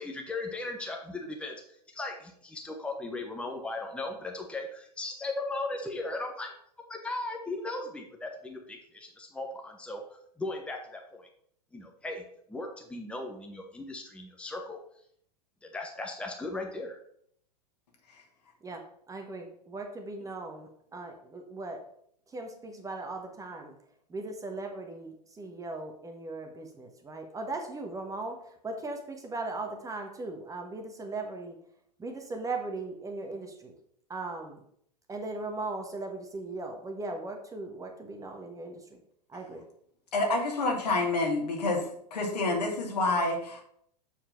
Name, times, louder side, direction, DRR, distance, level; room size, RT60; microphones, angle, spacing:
voice 1, 0.0-1.5 1.9-6.5 6.9-11.3 11.7-12.2 12.5-14.8 15.7-17.0, left 2 dB, 5° left, 2 dB, 1.1 m, -37 dB
voice 2, 18.6-21.9 22.3-23.7 24.1-31.6 32.0-33.7 34.1-34.6 35.1-39.0 39.3-39.7, right 2 dB, 15° right, 4 dB, 1.3 m, -38 dB
voice 3, 40.1-41.8 42.1-43.6, left 2 dB, 70° left, 1 dB, 2.4 m, -28 dB
7.3 x 4.6 x 5.8 m, 0.67 s
figure-of-eight pair, 95°, 21 cm